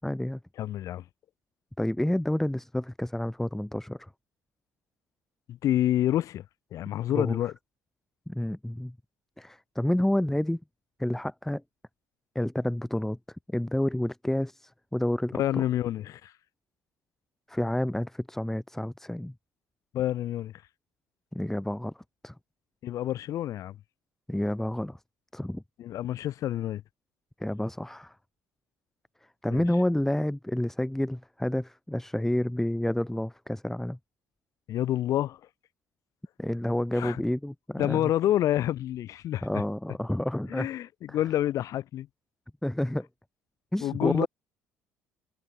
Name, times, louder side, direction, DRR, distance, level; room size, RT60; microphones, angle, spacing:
voice 1, 0.0-0.4 1.8-4.1 7.2-7.4 8.3-9.0 9.4-10.6 11.0-11.6 12.4-13.2 13.5-15.6 17.5-19.3 21.3-21.9 22.2-22.3 24.3-25.0 25.3-25.6 27.4-28.1 29.4-34.0 36.4-38.1 39.4-40.7 41.1-41.2 42.6-43.1 43.7-44.3, left 1 dB, 5° left, 5.2 m, -29 dB
voice 2, 0.6-1.0 5.5-6.4 6.7-7.5 15.3-16.3 19.9-20.5 22.8-23.8 25.8-26.8 29.5-29.6 34.7-35.4 37.0-37.2 37.8-39.6 40.5-42.1 43.8-44.3, left 12 dB, 60° left, 5.6 m, -28 dB
hypercardioid pair, 65°, 6 cm